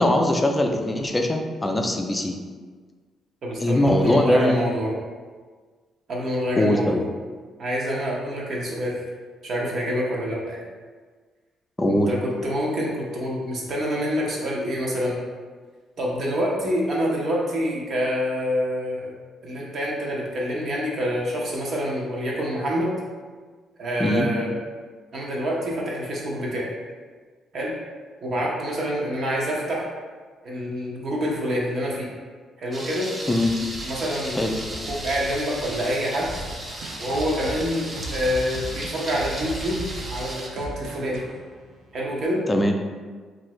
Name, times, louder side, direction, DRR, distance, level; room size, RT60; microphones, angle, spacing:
voice 1, 0.0-2.3 3.6-4.6 6.6-7.0 11.8-12.1 24.0-24.3 33.3-33.5 34.4-34.6 42.5-42.7, left 1 dB, 15° left, 3 dB, 0.4 m, -21 dB
voice 2, 3.4-4.9 6.1-7.0 7.6-9.1 9.4-10.6 11.9-15.2 16.0-19.2 19.4-23.0 23.8-24.5 25.1-26.7 27.5-27.8 28.2-29.9 30.4-32.1 32.6-33.1 33.8-34.4 34.9-36.3 37.0-41.3 41.9-42.4, equal, 60° right, -3 dB, 0.8 m, -27 dB
Thunder, 32.7-40.5, right 1 dB, 30° right, 0.6 m, -35 dB
sound 1, 36.8-42.3, right 2 dB, 85° right, 0.4 m, -36 dB
2.7 x 2.5 x 3.1 m, 1.5 s
cardioid pair, 90°, 0 cm